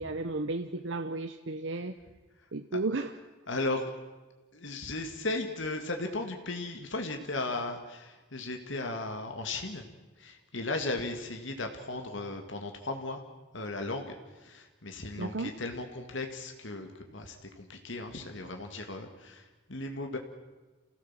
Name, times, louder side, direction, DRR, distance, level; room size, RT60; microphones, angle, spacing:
voice 1, 0.0-1.9 2.5-3.1 15.2-15.5, right 2 dB, 70° right, 8 dB, 0.9 m, -33 dB
voice 2, 3.5-3.9 4.5-9.9 10.2-13.2 13.5-20.2, left 2 dB, 70° left, 4 dB, 2.1 m, -36 dB
28.5 x 17.0 x 7.5 m, 1.2 s
head